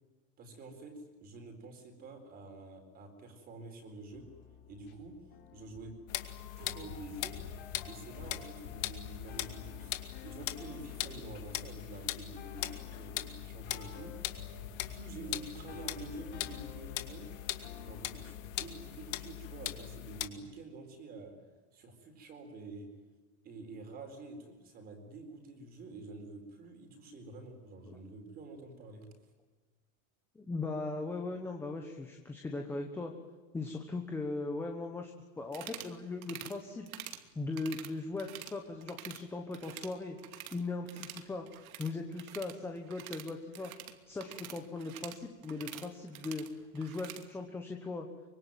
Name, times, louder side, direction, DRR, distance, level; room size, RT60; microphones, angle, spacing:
voice 1, 0.4-4.3 4.7-5.2 5.5-6.0 6.6-7.4 7.8-9.9 10.2-14.1 14.9-17.3 17.8-21.4 21.7-22.9 23.4-29.1, right 3 dB, 20° right, 6 dB, 4.3 m, -48 dB
sound 1, 4.1-19.8, left 7 dB, 25° left, 3.8 m, -51 dB
sound 2, 6.1-20.3, left 13 dB, 65° left, 2.4 m, -41 dB
voice 2, 30.3-33.1 33.5-36.9 37.3-40.2 40.5-41.5 41.8-43.7 44.1-46.4 46.7-48.1, left 3 dB, 5° left, 3 dB, 1.2 m, -39 dB
sound 3, 35.4-35.9 36.2-36.6 36.9-37.2 37.5-38.6 38.8-39.2 39.5-40.6 40.9-47.3, right 11 dB, 75° right, 2.6 m, -47 dB
25.0 x 24.5 x 9.3 m, 1.3 s
supercardioid pair, 180°, 42 cm